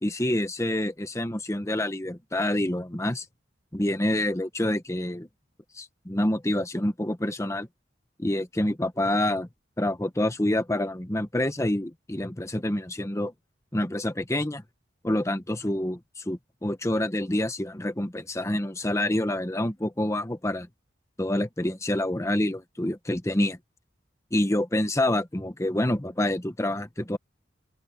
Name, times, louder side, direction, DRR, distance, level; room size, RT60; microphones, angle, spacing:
voice 1, 0.0-3.3 3.7-5.3 5.7-7.7 8.2-9.5 9.8-13.3 13.7-14.6 15.0-20.7 21.2-23.6 24.3-27.2, left 1 dB, 15° left, 1.0 m, -27 dB
open air
head